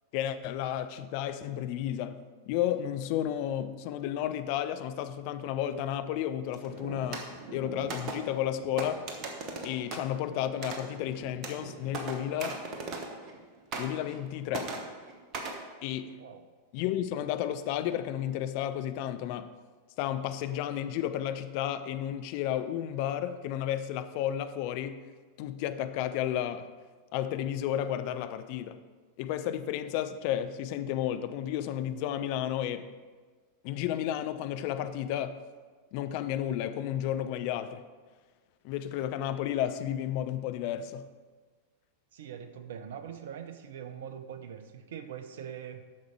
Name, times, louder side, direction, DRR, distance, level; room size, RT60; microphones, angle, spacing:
voice 1, 0.1-9.0 9.6-12.6 13.8-14.8 15.8-16.2 16.7-19.5 20.0-25.0 25.4-26.7 27.1-28.8 29.2-32.9 33.6-35.4 35.9-37.8 38.6-41.1, left 11 dB, 45° left, 0.5 m, -32 dB
sound 1, 6.5-13.4 13.7-14.3 14.5-15.6, right 3 dB, 35° right, 1.3 m, -39 dB
voice 2, 42.1-45.9, right 8 dB, 60° right, 0.7 m, -43 dB
10.5 x 6.5 x 4.7 m
figure-of-eight pair, 90°, 0 cm